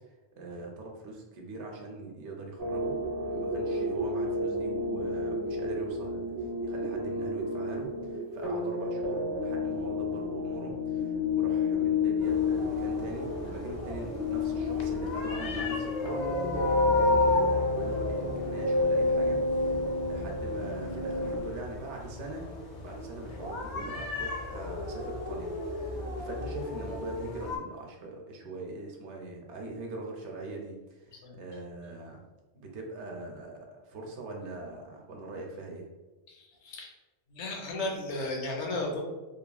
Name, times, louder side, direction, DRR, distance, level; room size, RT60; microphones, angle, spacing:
voice 1, 0.3-22.5 22.8-32.3 32.5-35.8, right 2 dB, 80° right, 1 dB, 0.9 m, -42 dB
sound 1, 2.6-21.4, left 2 dB, 50° right, 0.9 m, -30 dB
sound 2, 12.2-27.6, left 3 dB, 55° left, 0.5 m, -36 dB
voice 2, 36.3-36.9 37.3-39.1, left 2 dB, 80° left, 0 dB, 0.9 m, -34 dB
2.9 x 2.4 x 2.2 m, 1.1 s
omnidirectional pair, 1.2 m